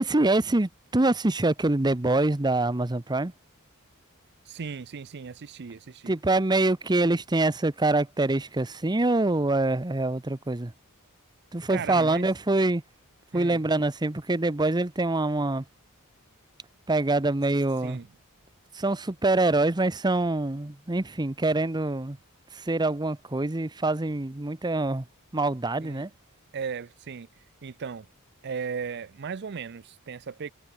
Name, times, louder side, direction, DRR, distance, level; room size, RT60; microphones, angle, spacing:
voice 1, 0.0-3.3 6.1-10.7 11.5-12.8 13.3-15.6 16.9-18.0 18.7-22.2 22.5-25.1 25.3-26.1, right 2 dB, 20° right, 0.8 m, -25 dB
voice 2, 4.5-6.1 11.7-12.3 13.3-13.6 17.8-18.1 25.8-26.0 26.5-27.3 27.6-28.1 28.4-30.5, right 6 dB, 50° right, 0.5 m, -36 dB
head